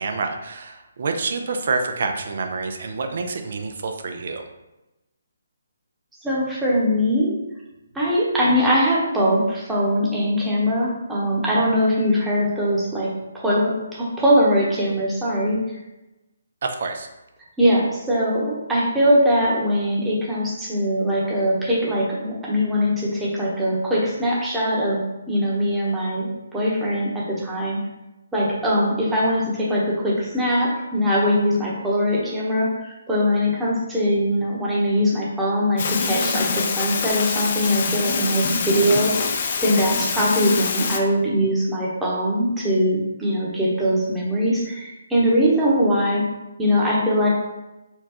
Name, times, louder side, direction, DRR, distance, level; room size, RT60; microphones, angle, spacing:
voice 1, 0.0-4.4 16.6-17.1, right 4 dB, 55° right, 5 dB, 0.4 m, -27 dB
voice 2, 6.2-7.3 7.9-13.1 13.4-15.6 17.6-25.0 25.3-26.3 26.5-27.8 28.3-46.2 46.6-47.3, equal, 5° right, -6 dB, 0.9 m, -21 dB
sound 1, 35.8-41.0, left 5 dB, 45° left, 0.4 m, -24 dB
4.4 x 2.3 x 2.9 m, 0.98 s
figure-of-eight pair, 145°, 0 cm